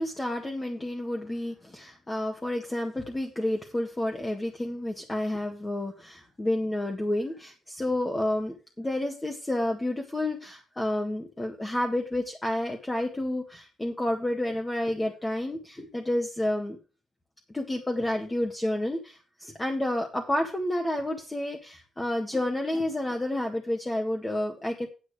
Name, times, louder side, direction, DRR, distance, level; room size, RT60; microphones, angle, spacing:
voice 1, 0.0-16.8 17.5-24.9, left 1 dB, 20° left, 2 dB, 1.8 m, -30 dB
9.3 x 7.8 x 4.9 m, 0.34 s
cardioid pair, 70°, 0 cm